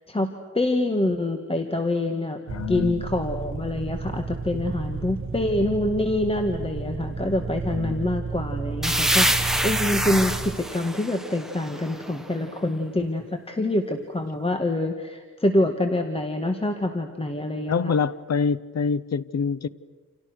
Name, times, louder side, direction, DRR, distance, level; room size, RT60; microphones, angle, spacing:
voice 1, 0.1-2.4 2.7-9.3 9.6-18.0, left 1 dB, 20° left, 2.0 m, -26 dB
voice 2, 2.5-3.1 7.7-8.1 17.7-19.7, left 5 dB, 60° left, 0.9 m, -26 dB
sound 1, 2.5-10.5, right 4 dB, 45° right, 1.7 m, -32 dB
sound 2, 8.8-12.4, right 1 dB, ahead, 1.8 m, -26 dB
30.0 x 28.5 x 6.4 m
wide cardioid pair, 105°, 30 cm